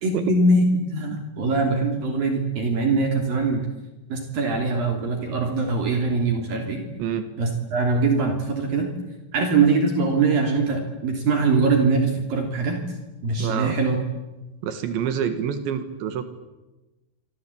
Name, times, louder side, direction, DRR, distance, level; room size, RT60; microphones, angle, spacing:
voice 1, 0.0-3.6 4.1-6.8 7.4-8.9 9.3-12.8 13.2-14.0, right 3 dB, 55° right, 3 dB, 4.7 m, -22 dB
voice 2, 13.4-13.8 14.6-16.2, right 8 dB, 80° right, 9 dB, 4.0 m, -27 dB
27.0 x 25.5 x 8.6 m, 1.1 s
omnidirectional pair, 5.2 m